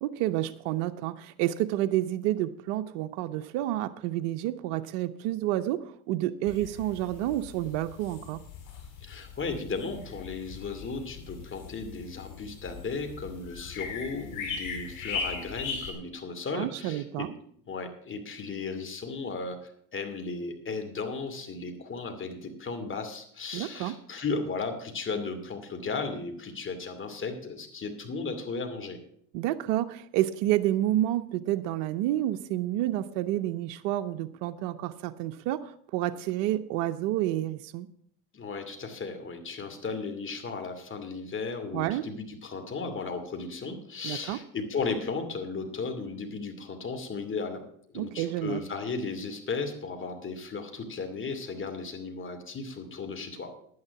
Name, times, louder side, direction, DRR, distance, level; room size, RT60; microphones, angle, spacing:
voice 1, 0.0-8.4 16.5-17.3 23.5-24.0 29.3-37.9 41.7-42.0 44.0-44.4 47.9-48.6, right 14 dB, 70° right, 10 dB, 0.8 m, -29 dB
sound 1, 6.5-15.9, left 5 dB, 50° left, 5.3 m, -39 dB
voice 2, 9.0-17.3 17.7-29.0 38.3-47.6 47.9-53.5, left 4 dB, 30° left, 6 dB, 2.5 m, -35 dB
11.0 x 9.6 x 5.8 m, 0.65 s
supercardioid pair, 100°, 42 cm